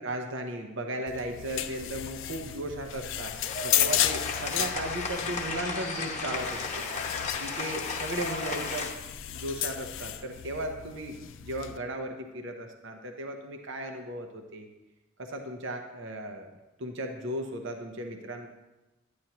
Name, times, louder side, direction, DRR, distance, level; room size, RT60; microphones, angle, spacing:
voice 1, 0.0-3.4 3.6-6.9 7.4-8.9 9.3-14.7 15.2-16.5 16.8-18.5, right 1 dB, 60° right, 4 dB, 0.8 m, -36 dB
sound 1, 1.1-11.8, left 13 dB, 60° left, 0.4 m, -34 dB
sound 2, 3.2-8.9, left 4 dB, 35° left, 0.9 m, -34 dB
10.5 x 9.5 x 2.9 m, 1.0 s
head